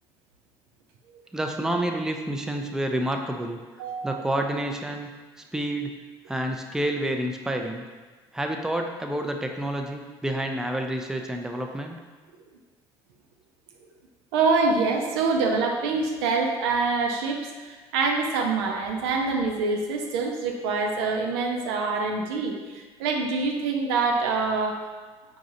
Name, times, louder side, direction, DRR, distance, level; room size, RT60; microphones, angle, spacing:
voice 1, 1.3-3.6 4.0-5.1 5.5-5.9 6.3-7.8 8.3-12.0, right 1 dB, 5° right, 3 dB, 0.4 m, -29 dB
voice 2, 3.8-4.3 14.3-24.8, right 4 dB, 80° right, 1 dB, 0.5 m, -25 dB
4.7 x 2.7 x 2.6 m, 1.3 s
hypercardioid pair, 55°, 14 cm